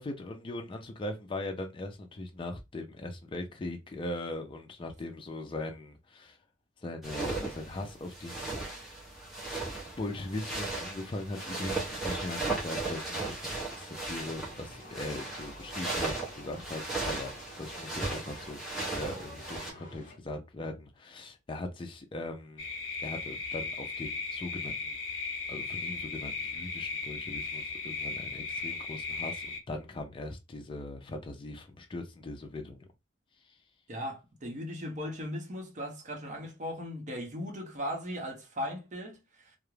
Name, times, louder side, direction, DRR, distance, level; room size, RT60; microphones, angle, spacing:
voice 1, 0.0-6.4 6.8-8.6 10.0-18.6 18.9-22.7 23.0-25.0 25.5-32.8, left 2 dB, 25° left, 0.4 m, -40 dB
sound 1, 7.0-19.7, right 2 dB, ahead, 0.8 m, -36 dB
sound 2, 14.3-20.2, left 1 dB, 45° left, 1.1 m, -51 dB
sound 3, 22.6-29.6, left 4 dB, 80° left, 0.5 m, -36 dB
voice 2, 33.9-39.2 39.5-39.6, equal, 40° right, 0.7 m, -37 dB
2.3 x 2.0 x 3.0 m
head